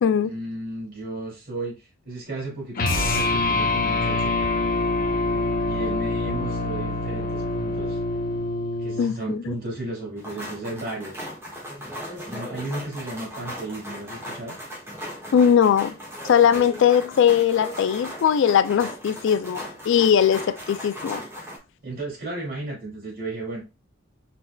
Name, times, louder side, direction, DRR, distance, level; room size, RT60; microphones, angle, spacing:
voice 1, 0.2-4.3 5.6-8.0 8.8-11.2 12.3-14.6 21.8-23.6, right 2 dB, 50° right, 2.6 m, -34 dB
sound 1, 2.7-9.1, left 2 dB, 45° left, 0.8 m, -25 dB
voice 2, 9.0-9.5 15.3-15.9 16.2-21.2, left 8 dB, 65° left, 0.3 m, -20 dB
sound 2, 10.2-21.6, equal, 15° right, 1.5 m, -37 dB
4.4 x 4.2 x 2.3 m
head